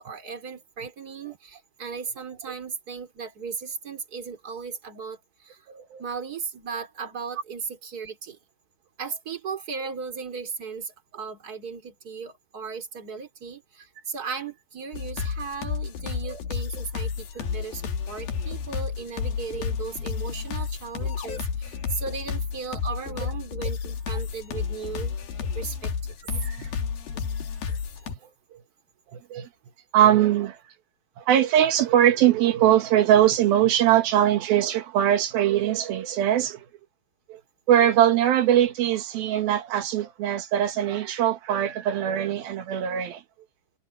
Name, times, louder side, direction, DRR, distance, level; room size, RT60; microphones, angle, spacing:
voice 1, 0.0-5.7 6.0-8.4 9.0-25.2 25.5-26.1 28.0-28.1, right 5 dB, 25° right, 3.6 m, -36 dB
voice 2, 5.7-6.0 9.8-9.9 15.2-15.3 16.2-16.4 22.0-22.2 23.2-23.3 26.4-26.7 29.1-29.5 29.9-30.6 31.2-36.7 37.3-37.4 37.7-43.2, right 11 dB, 85° right, 3.3 m, -22 dB
sound 1, 14.9-28.2, left 6 dB, 80° left, 4.3 m, -31 dB
omnidirectional pair, 4.2 m